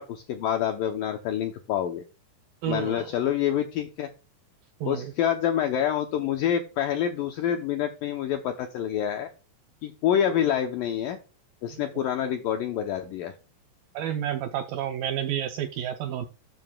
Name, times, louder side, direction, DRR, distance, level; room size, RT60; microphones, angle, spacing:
voice 1, 0.0-2.0 2.7-4.1 4.8-9.3 9.8-11.2 11.6-13.3, left 9 dB, 80° left, 2.0 m, -27 dB
voice 2, 2.6-3.0 4.8-5.1 11.7-11.8 14.0-16.3, right 10 dB, 90° right, 2.0 m, -30 dB
12.5 x 7.3 x 2.3 m
omnidirectional pair, 4.9 m